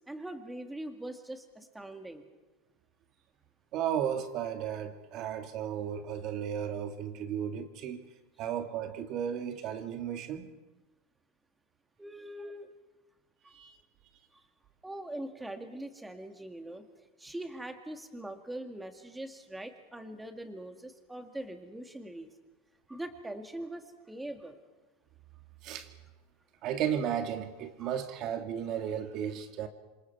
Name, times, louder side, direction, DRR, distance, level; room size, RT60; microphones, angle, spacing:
voice 1, 0.1-2.3 12.0-12.7 14.3-14.4 14.8-16.8 17.2-22.3 22.9-24.6, right 1 dB, 5° right, 2.0 m, -42 dB
voice 2, 3.7-8.1 8.4-10.5 12.4-12.5 13.5-13.8 25.6-25.9 26.6-29.7, right 9 dB, 45° right, 2.2 m, -34 dB
28.0 x 25.0 x 4.7 m
supercardioid pair, 135°, 0 cm